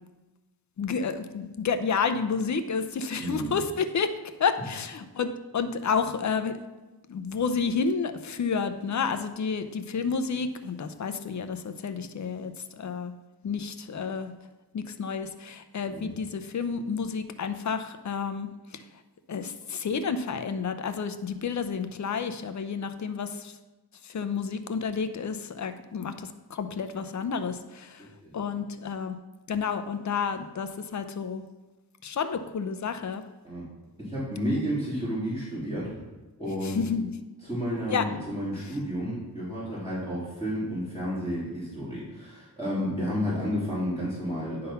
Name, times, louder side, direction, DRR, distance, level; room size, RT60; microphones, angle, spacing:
voice 1, 0.8-4.1 4.4-6.6 7.1-13.1 13.4-14.3 14.7-18.8 19.3-23.5 24.1-26.1 26.5-28.0 28.3-29.2 29.5-31.4 32.0-33.2 36.6-37.1 37.9-38.1, left 5 dB, 45° left, 9 dB, 0.6 m, -30 dB
voice 2, 3.2-3.5 15.8-16.1 28.0-28.3 33.4-33.6 34.0-36.0 36.4-36.8 37.4-44.7, equal, 10° right, -12 dB, 2.9 m, -31 dB
9.7 x 3.9 x 5.6 m, 1.1 s
wide cardioid pair, 115°, 40 cm